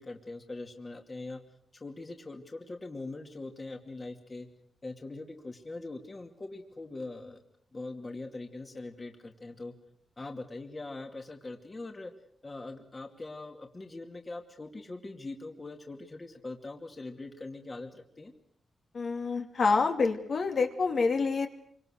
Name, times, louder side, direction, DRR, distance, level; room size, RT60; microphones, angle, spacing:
voice 1, 0.0-1.4 1.7-4.5 4.8-7.4 7.7-9.7 10.2-12.1 12.4-18.3, left 2 dB, 25° left, 4 dB, 2.6 m, -42 dB
voice 2, 18.9-21.5, left 4 dB, 50° left, 4 dB, 2.7 m, -27 dB
28.0 x 25.0 x 6.6 m, 0.66 s
wide cardioid pair, 140°, 0 cm